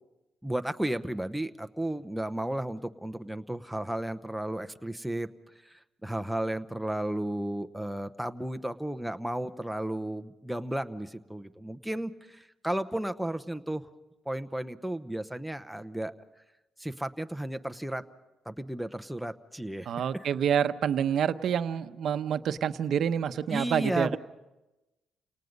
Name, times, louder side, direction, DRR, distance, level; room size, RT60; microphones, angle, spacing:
voice 1, 0.4-5.3 5.6-13.8 14.3-16.1 16.8-18.0 18.5-19.9 20.1-20.2 23.5-24.2, right 1 dB, 5° right, 9 dB, 0.9 m, -33 dB
voice 2, 19.9-24.2, right 8 dB, 65° right, 11 dB, 0.9 m, -28 dB
29.0 x 19.0 x 5.4 m, 1.0 s
cardioid pair, 90°, 0 cm